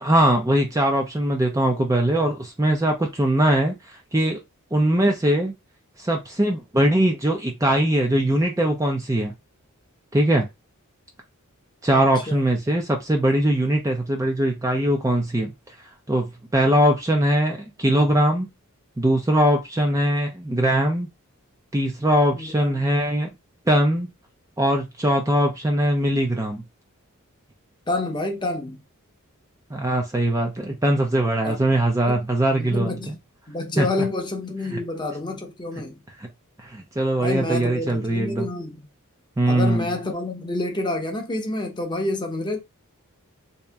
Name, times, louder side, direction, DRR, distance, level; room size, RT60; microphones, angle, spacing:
voice 1, 0.0-4.4 4.7-5.5 6.0-9.3 10.1-10.5 11.8-15.5 16.1-18.5 19.0-21.1 21.7-23.3 23.7-24.1 24.6-26.6 29.7-32.9 33.8-33.9 36.2-36.3 36.6-38.5 39.4-39.9, right 1 dB, 15° right, 0.5 m, -21 dB
voice 2, 22.3-22.8 27.9-28.8 31.4-31.6 32.1-32.3 32.6-33.2 33.5-36.0 37.2-38.9 39.4-42.6, left 2 dB, 20° left, 0.8 m, -28 dB
3.0 x 2.8 x 3.4 m
head